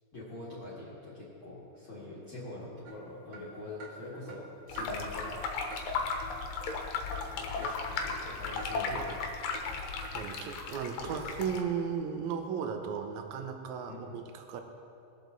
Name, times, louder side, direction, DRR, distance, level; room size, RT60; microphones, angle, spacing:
voice 1, 0.1-5.4 7.3-9.2 11.0-11.2 13.9-14.2, left 2 dB, 40° left, -9 dB, 2.3 m, -44 dB
sound 1, 2.8-3.0 3.3-3.4 3.8-3.9 4.3-4.4 4.8-4.9 5.2-5.4 5.7-5.9 6.2-6.4 6.7-6.8 7.2-7.3 7.6-7.7 8.1-8.2 8.6-8.7 9.1-9.2 9.5-9.7 10.0-10.1, right 3 dB, 55° right, 1.5 m, -46 dB
sound 2, 4.7-11.6, left 4 dB, 70° left, 2.6 m, -36 dB
voice 2, 10.1-14.6, right 7 dB, 70° right, 5 dB, 1.8 m, -35 dB
20.5 x 7.5 x 4.0 m, 2.7 s
omnidirectional pair, 4.3 m